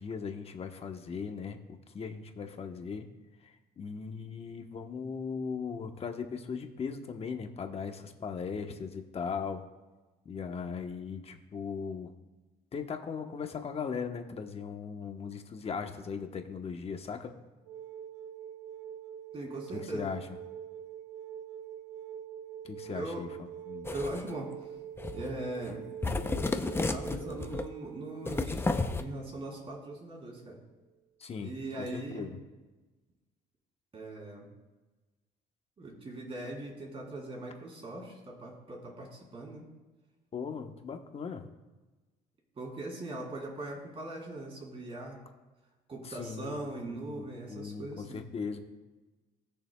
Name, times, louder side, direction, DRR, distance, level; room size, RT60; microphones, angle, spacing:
voice 1, 0.0-1.6 1.9-3.1 3.4-9.6 10.2-12.1 12.7-17.3 19.7-20.3 22.6-23.3 23.7-23.9 31.2-32.3 40.3-41.4 46.0-48.6, left 6 dB, 35° left, 5 dB, 1.0 m, -38 dB
sound 1, 17.7-30.1 31.9-32.0, right 9 dB, 90° right, 0.9 m, -45 dB
voice 2, 19.3-20.1 22.9-23.3 23.9-24.7 25.1-25.8 26.7-30.6 31.4-32.3 33.9-34.5 35.8-39.7 42.5-45.2 45.9-48.2, right 2 dB, 35° right, -1 dB, 3.4 m, -40 dB
sound 2, 23.8-24.3 25.0-25.4 25.6-25.8 26.0-27.7 28.2-29.0, left 3 dB, 15° left, 0.6 m, -32 dB
19.5 x 6.8 x 2.3 m, 1.2 s
cardioid pair, 110°, 17 cm